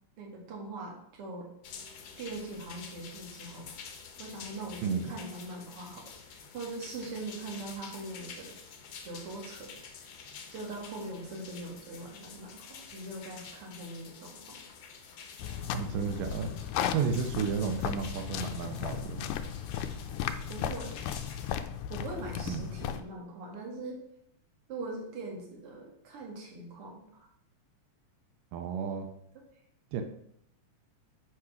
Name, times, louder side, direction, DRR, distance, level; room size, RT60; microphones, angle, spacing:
voice 1, 0.2-1.5 2.2-3.8 4.2-8.6 9.0-10.1 10.5-14.6 20.5-21.1 21.9-24.0 24.7-27.3 29.3-29.4, right 2 dB, 50° right, -1 dB, 2.6 m, -42 dB
sound 1, 1.6-21.5, left 6 dB, 65° left, 1.8 m, -49 dB
sound 2, 15.4-23.0, left 9 dB, 80° left, 1.8 m, -35 dB
voice 2, 15.7-16.5 16.9-19.2 22.5-22.7 28.5-29.1 29.9-30.0, right 6 dB, 90° right, 6 dB, 2.5 m, -32 dB
8.4 x 4.9 x 5.8 m, 0.71 s
omnidirectional pair, 3.7 m